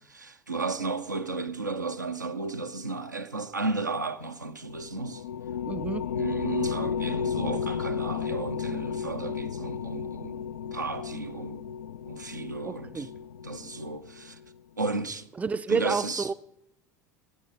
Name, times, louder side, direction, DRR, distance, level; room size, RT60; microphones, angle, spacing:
voice 1, 0.0-5.2 6.2-10.4 10.7-11.7 12.1-13.1 13.4-14.4 14.8-15.3 15.7-16.3, right 3 dB, 90° right, 0.7 m, -34 dB
sound 1, 4.7-14.4, left 7 dB, 75° left, 0.4 m, -33 dB
voice 2, 5.6-6.1 12.6-13.1 15.4-16.3, right 5 dB, 15° right, 0.5 m, -29 dB
12.5 x 9.0 x 5.3 m
figure-of-eight pair, 75°, 10 cm